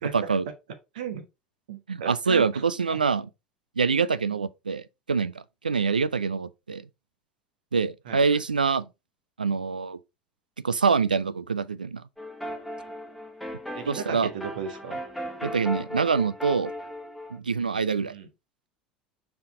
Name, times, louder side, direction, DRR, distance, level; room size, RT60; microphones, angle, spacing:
voice 1, 0.1-0.5 1.9-3.3 3.8-6.8 7.7-8.9 9.4-10.0 10.6-12.0 13.9-14.3 15.4-16.7 17.3-18.1, right 5 dB, 85° right, 0.4 m, -25 dB
voice 2, 0.9-1.2 1.7-2.6 2.9-3.0 4.3-4.4 8.0-8.2 13.7-15.0 18.0-18.3, right 7 dB, 70° right, 1.3 m, -35 dB
sound 1, 12.2-17.4, equal, ahead, 1.3 m, -37 dB
5.6 x 4.8 x 3.7 m
figure-of-eight pair, 70°, 5 cm